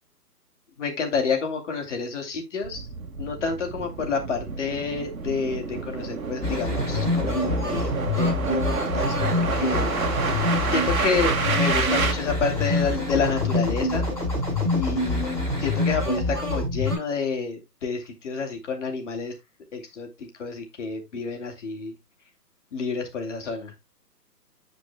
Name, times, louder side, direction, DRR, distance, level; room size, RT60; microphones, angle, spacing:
voice 1, 0.8-2.9 3.2-7.9 8.2-9.9 10.7-14.1 14.7-19.3 19.7-21.9 22.7-23.7, left 5 dB, 45° left, 2.9 m, -29 dB
sound 1, 2.6-12.1, right 5 dB, 60° right, 1.9 m, -29 dB
sound 2, 6.4-17.0, left 2 dB, 5° left, 5.0 m, -26 dB
15.0 x 5.2 x 2.2 m
figure-of-eight pair, 140°, 48 cm